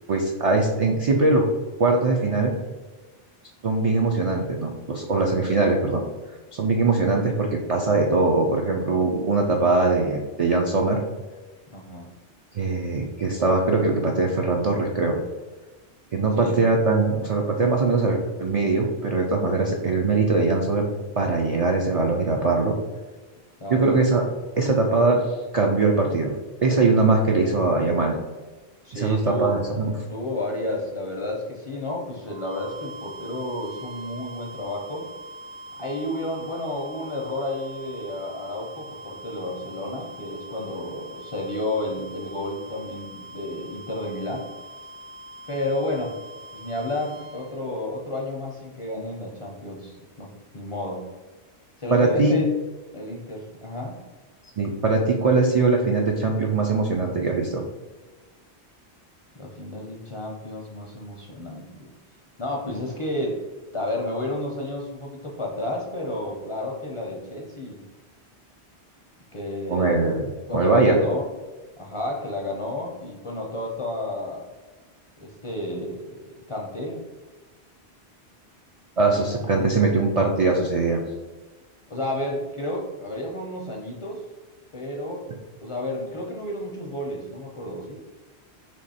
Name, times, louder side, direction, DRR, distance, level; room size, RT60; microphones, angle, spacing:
voice 1, 0.1-1.5 1.8-2.5 3.6-6.0 6.5-11.0 12.5-15.2 16.1-20.9 21.2-22.8 23.7-24.2 24.6-25.3 25.5-26.3 26.6-28.2 28.9-29.9 51.9-52.4 54.6-57.6 69.7-70.2 70.5-71.0 79.0-81.0, right 3 dB, 60° right, 1 dB, 0.3 m, -21 dB
voice 2, 11.7-12.1 16.4-16.6 23.6-24.0 28.8-29.6 30.1-35.1 35.8-44.5 45.5-46.1 46.5-51.1 51.8-52.5 52.9-54.0 59.4-61.7 62.4-63.4 63.7-67.9 69.3-70.1 70.4-71.3 71.8-74.5 75.2-76.2 76.5-77.0 81.9-84.2 84.7-85.2 85.6-88.0, left 1 dB, 40° left, -1 dB, 0.4 m, -31 dB
sound 1, 32.3-47.6, right 1 dB, 80° right, 0.9 m, -42 dB
3.5 x 2.9 x 4.1 m, 1.2 s
omnidirectional pair, 1.1 m